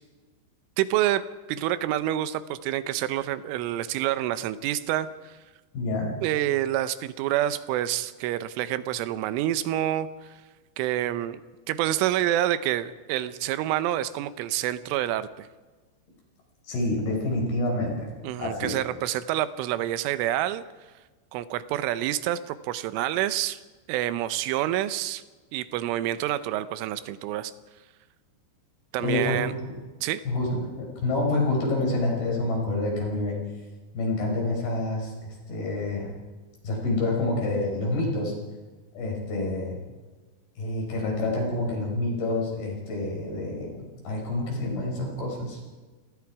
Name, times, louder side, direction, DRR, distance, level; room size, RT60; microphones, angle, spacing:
voice 1, 0.8-1.2 1.5-5.4 6.2-10.4 10.8-11.4 11.7-15.5 18.2-20.6 21.3-23.6 23.9-25.2 25.5-27.5 28.9-29.5 30.0-30.2, right 13 dB, 85° right, 13 dB, 3.4 m, -27 dB
voice 2, 5.7-6.1 16.7-18.1 18.4-18.7 29.0-29.4 30.3-33.4 33.9-36.1 36.6-38.3 39.0-39.8 40.6-45.6, left 2 dB, 55° left, -1 dB, 7.2 m, -28 dB
28.5 x 19.5 x 4.8 m, 1.3 s
omnidirectional pair, 5.5 m